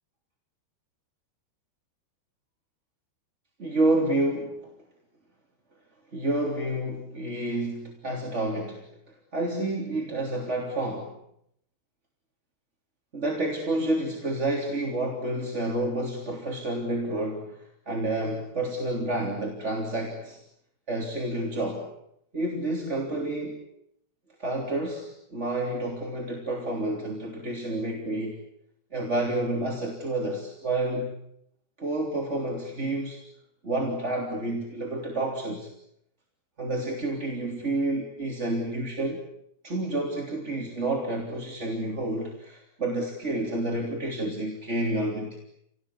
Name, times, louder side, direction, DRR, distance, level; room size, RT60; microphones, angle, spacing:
voice 1, 3.6-4.7 6.1-11.1 13.1-20.4 20.9-21.9 22.3-23.6 24.4-28.4 28.9-31.1 31.8-33.2 33.6-35.7 36.6-39.2 39.6-45.4, right 1 dB, 20° right, 0 dB, 3.0 m, -29 dB
29.5 x 19.5 x 9.9 m, 0.76 s
omnidirectional pair, 5.0 m